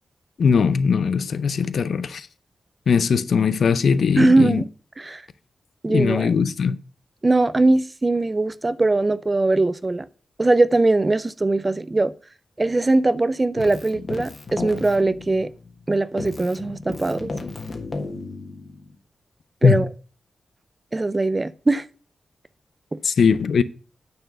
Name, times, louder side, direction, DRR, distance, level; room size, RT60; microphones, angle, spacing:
voice 1, 0.4-2.3 2.9-4.6 5.9-6.8 19.6-19.8 23.0-23.6, left 6 dB, 65° left, 0.5 m, -20 dB
voice 2, 4.2-4.6 5.0-5.2 5.8-6.3 7.2-10.1 10.4-12.1 12.6-15.5 15.9-17.3 19.6-19.9 20.9-21.8, right 2 dB, 20° right, 0.4 m, -20 dB
Keyboard (musical), 13.6-15.8 16.2-18.9, left 3 dB, 35° left, 1.4 m, -34 dB
9.2 x 4.6 x 6.6 m
wide cardioid pair, 175°, 0 cm